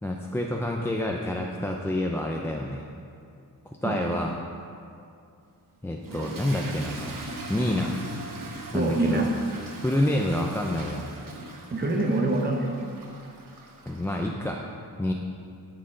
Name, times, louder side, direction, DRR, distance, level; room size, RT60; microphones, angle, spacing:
voice 1, 0.0-2.8 3.7-4.4 5.8-7.2 7.5-9.3 9.8-11.1 13.9-14.6 15.0-15.1, left 1 dB, 5° left, 0 dB, 0.4 m, -28 dB
Toilet flush / Fill (with liquid), 6.0-14.3, right 2 dB, 60° right, 1.1 m, -40 dB
voice 2, 8.7-9.3 11.7-12.8, right 2 dB, 30° right, 1 dB, 0.8 m, -25 dB
12.0 x 6.6 x 3.7 m, 2.5 s
wide cardioid pair, 140°, 36 cm